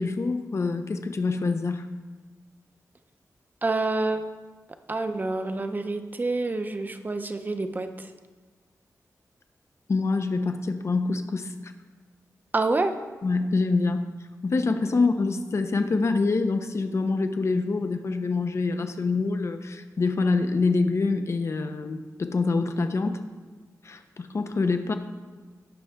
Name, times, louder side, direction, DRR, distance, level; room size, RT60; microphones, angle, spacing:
voice 1, 0.0-1.9 9.9-11.5 13.2-14.1 14.4-23.2 23.8-24.9, left 3 dB, 50° left, 8 dB, 0.8 m, -25 dB
voice 2, 3.6-4.2 4.9-8.1 12.5-13.0, right 2 dB, 30° right, 8 dB, 0.7 m, -27 dB
17.5 x 6.6 x 3.6 m, 1.4 s
wide cardioid pair, 130°, 6 cm